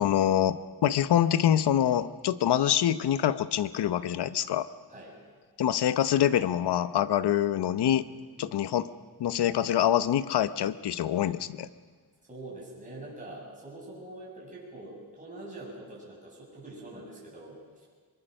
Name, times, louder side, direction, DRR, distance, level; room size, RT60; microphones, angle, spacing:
voice 1, 0.0-4.7 5.6-8.1 8.4-8.9 9.2-11.7, left 10 dB, 80° left, 14 dB, 0.9 m, -25 dB
voice 2, 12.3-17.9, right 2 dB, 20° right, -4 dB, 7.2 m, -44 dB
23.5 x 22.5 x 6.6 m, 1.5 s
wide cardioid pair, 140°, 39 cm